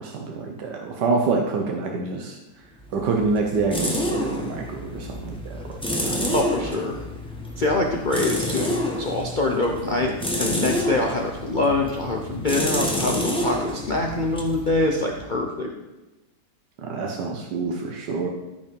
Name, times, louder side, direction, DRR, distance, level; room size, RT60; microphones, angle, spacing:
voice 1, 0.0-2.4 2.9-5.6 6.0-6.3 16.8-18.3, right 4 dB, 85° right, 1 dB, 1.7 m, -26 dB
sound 1, 2.8-15.4, left 1 dB, 5° left, 1.2 m, -29 dB
voice 2, 6.3-7.0 7.6-15.7, left 2 dB, 35° left, 0 dB, 0.9 m, -24 dB
14.0 x 5.4 x 5.3 m, 1.0 s
omnidirectional pair, 1.8 m